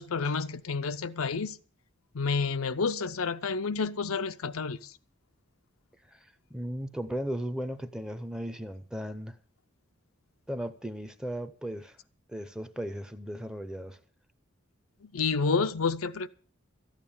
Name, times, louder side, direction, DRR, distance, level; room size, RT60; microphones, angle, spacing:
voice 1, 0.0-1.6 2.1-4.8 15.1-16.3, left 4 dB, 85° left, 0.7 m, -29 dB
voice 2, 6.1-9.4 10.5-12.0 12.3-14.0, equal, 5° right, 0.6 m, -36 dB
13.5 x 9.0 x 7.1 m
head